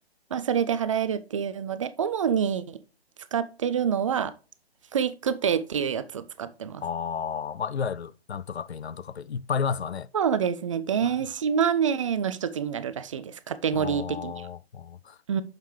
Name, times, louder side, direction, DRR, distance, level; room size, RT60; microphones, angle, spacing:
voice 1, 0.3-2.8 3.3-4.3 4.9-6.8 10.1-14.5 15.3-15.4, right 7 dB, 30° right, 0.5 m, -27 dB
voice 2, 6.8-10.1 11.0-11.1 13.7-15.2, left 6 dB, 80° left, 0.5 m, -32 dB
8.8 x 6.6 x 3.1 m
figure-of-eight pair, 130°, 32 cm